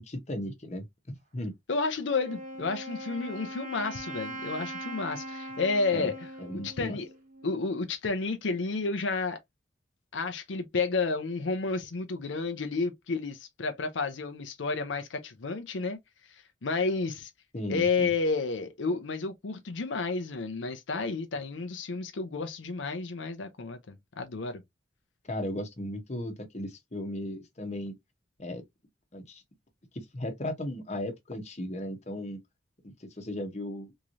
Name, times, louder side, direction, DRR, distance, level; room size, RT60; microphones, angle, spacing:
voice 1, 0.0-1.5 5.9-6.1 6.4-7.0 17.5-18.1 25.2-27.9 28.4-28.6 29.1-29.4 29.9-32.4 32.8-33.9, left 1 dB, 35° left, 1.0 m, -36 dB
voice 2, 1.7-6.3 6.6-7.1 7.4-9.4 10.1-16.0 16.6-17.3 17.7-24.6, left 4 dB, 80° left, 0.6 m, -31 dB
Wind instrument woodwind instrument, 2.0-7.8, right 1 dB, 45° right, 1.0 m, -41 dB
3.6 x 3.0 x 2.6 m
head